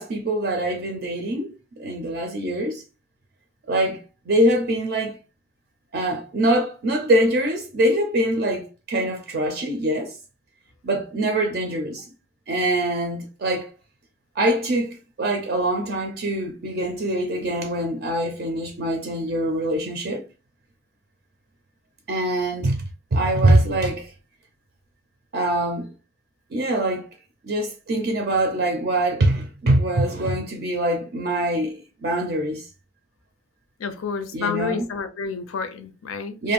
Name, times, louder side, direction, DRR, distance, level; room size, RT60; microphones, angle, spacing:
voice 1, 0.0-2.8 3.7-5.2 5.9-10.2 10.8-12.1 12.5-13.7 14.4-20.3 22.1-22.8 23.1-24.1 25.3-25.9 26.5-27.1 27.4-32.7 34.3-34.9 36.4-36.5, right 1 dB, 50° right, 0.4 m, -23 dB
voice 2, 33.8-36.4, left 5 dB, 80° left, 0.5 m, -29 dB
2.5 x 2.1 x 3.0 m
head